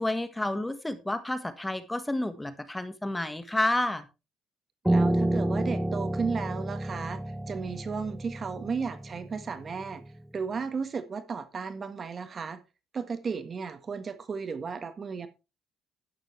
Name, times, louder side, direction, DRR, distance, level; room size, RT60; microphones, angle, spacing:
voice 1, 0.0-4.1, left 1 dB, 10° left, 11 dB, 1.6 m, -30 dB
Piano, 4.9-10.1, right 1 dB, 5° right, 0.8 m, -30 dB
voice 2, 4.9-10.0 10.3-12.6 12.9-15.3, right 5 dB, 45° right, 11 dB, 1.6 m, -34 dB
12.0 x 9.9 x 3.3 m, 0.27 s
supercardioid pair, 70°, 0 cm